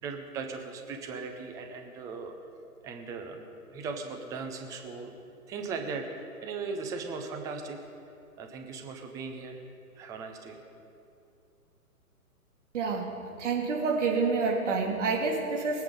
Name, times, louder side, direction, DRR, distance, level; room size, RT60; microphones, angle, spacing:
voice 1, 0.0-2.3 2.8-3.5 3.7-5.1 5.5-7.8 8.4-9.6 10.0-10.6, right 4 dB, 5° right, 4 dB, 0.6 m, -38 dB
voice 2, 12.7-13.1 13.4-15.8, right 4 dB, 50° right, -1 dB, 3.3 m, -28 dB
23.5 x 8.3 x 5.2 m, 2.6 s
figure-of-eight pair, 125°, 45 cm